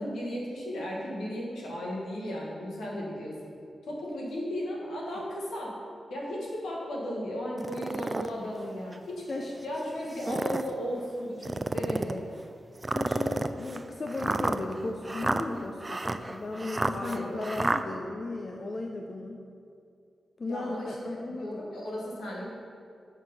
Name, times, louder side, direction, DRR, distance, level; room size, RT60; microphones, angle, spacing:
voice 1, 0.0-3.3 3.8-5.7 6.1-12.2 16.9-17.4 20.5-22.5, equal, 85° left, -4 dB, 1.6 m, -35 dB
sound 1, 7.6-8.3 8.9-9.0 10.0-10.7 11.4-12.2 12.8-17.8, right 2 dB, 30° right, 0.4 m, -30 dB
voice 2, 12.9-19.4 20.4-21.6, left 2 dB, 50° left, 2 dB, 0.6 m, -36 dB
7.3 x 4.6 x 5.4 m, 2.4 s
supercardioid pair, 40°, 0 cm